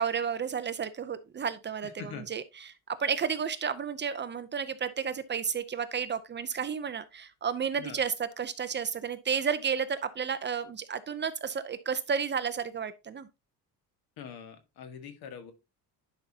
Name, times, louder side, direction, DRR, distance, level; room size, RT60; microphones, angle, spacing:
voice 1, 0.0-13.3, right 6 dB, 30° right, 0.6 m, -32 dB
voice 2, 1.8-2.3 7.8-8.0 14.2-15.5, left 7 dB, 70° left, 1.7 m, -43 dB
10.5 x 5.4 x 2.8 m
cardioid pair, 135°, 38 cm